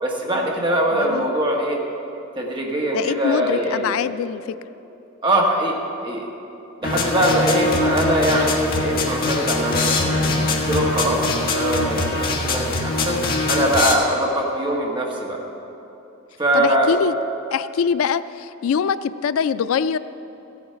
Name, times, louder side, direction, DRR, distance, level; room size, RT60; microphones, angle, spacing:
voice 1, 0.0-1.8 2.3-4.0 5.2-6.3 6.8-10.4 10.7-15.4 16.4-16.9, right 1 dB, 25° right, -1 dB, 1.6 m, -22 dB
voice 2, 0.9-1.3 2.9-4.4 16.5-17.1 17.5-20.0, left 7 dB, 85° left, 15 dB, 0.3 m, -23 dB
sound 1, 6.8-13.9, left 2 dB, 45° left, 1.4 m, -22 dB
15.5 x 8.6 x 5.7 m, 3.0 s
head